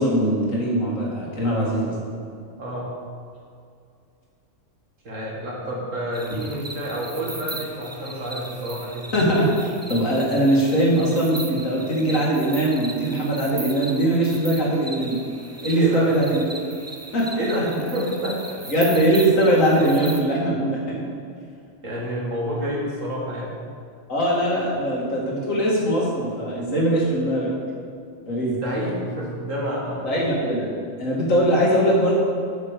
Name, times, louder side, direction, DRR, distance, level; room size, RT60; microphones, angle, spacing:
voice 1, 0.0-1.9 9.1-15.2 15.6-16.4 17.1-17.7 18.7-21.0 24.1-27.5 28.3-28.6 30.0-30.7 31.0-32.1, right 1 dB, 85° left, -4 dB, 2.6 m, -21 dB
voice 2, 2.6-2.9 5.0-9.1 15.8-16.1 17.4-18.4 21.8-23.6 28.4-30.1, equal, 75° right, -4 dB, 2.5 m, -29 dB
sound 1, 6.1-20.2, right 2 dB, 20° right, 0.4 m, -38 dB
8.5 x 6.5 x 6.8 m, 2.4 s
omnidirectional pair, 1.3 m